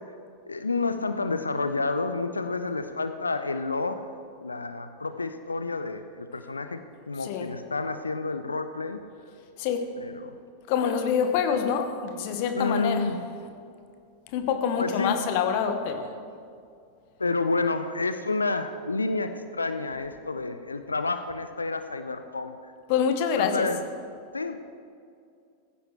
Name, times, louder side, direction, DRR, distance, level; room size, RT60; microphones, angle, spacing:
voice 1, 0.5-4.0 4.4-9.0 10.0-10.3 12.5-13.2 14.8-15.2 17.2-22.6 23.4-23.8 24.3-24.6, left 3 dB, 80° left, 0.6 m, -29 dB
voice 2, 7.2-7.6 9.6-9.9 10.7-13.1 14.3-16.1 22.9-23.7, left 7 dB, 45° left, 1.2 m, -26 dB
16.0 x 15.5 x 3.3 m
figure-of-eight pair, 90°, 0 cm